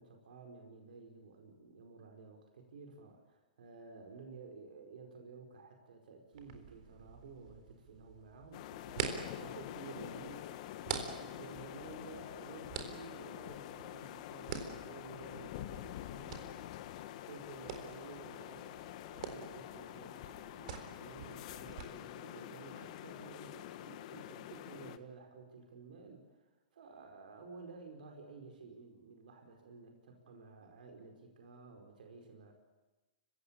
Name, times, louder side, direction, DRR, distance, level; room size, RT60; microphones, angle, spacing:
voice 1, 0.0-8.7 9.4-10.5 11.2-16.7 17.2-26.4 26.7-32.5, right 4 dB, 75° right, 2 dB, 4.8 m, -53 dB
sound 1, 6.3-21.8, right 7 dB, 55° right, 4.0 m, -47 dB
sound 2, 8.5-25.0, left 13 dB, 50° left, 1.4 m, -47 dB
29.5 x 17.0 x 8.6 m, 1.1 s
hypercardioid pair, 135°, 5 cm